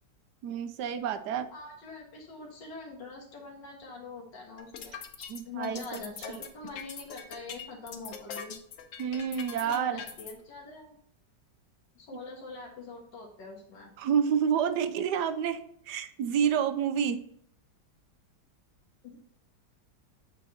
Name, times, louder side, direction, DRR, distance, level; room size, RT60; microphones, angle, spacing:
voice 1, 0.4-1.5 5.3-6.0 6.3-6.4 9.0-10.0 14.0-17.2, right 8 dB, 75° right, 11 dB, 1.2 m, -29 dB
voice 2, 1.5-8.6 9.6-11.0 12.0-13.9 19.0-19.2, left 3 dB, 85° left, -1 dB, 2.3 m, -44 dB
sound 1, 4.6-10.3, left 7 dB, 60° left, 0.9 m, -42 dB
8.3 x 4.3 x 4.1 m, 0.67 s
omnidirectional pair, 1.9 m